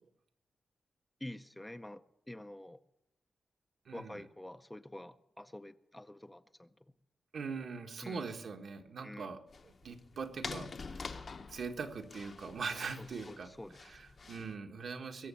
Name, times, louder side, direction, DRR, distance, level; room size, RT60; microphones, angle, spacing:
voice 1, 1.2-2.0 2.3-2.8 3.9-6.7 8.0-8.3 9.0-9.3 13.0-13.8, left 1 dB, 10° left, 10 dB, 0.5 m, -47 dB
voice 2, 3.8-4.2 7.3-11.2 11.5-13.5 13.8-15.3, right 5 dB, 65° right, 4 dB, 1.5 m, -42 dB
sound 1, 9.5-14.6, left 4 dB, 45° left, 0.9 m, -47 dB
22.0 x 7.4 x 7.0 m, 0.87 s
wide cardioid pair, 130°, 0 cm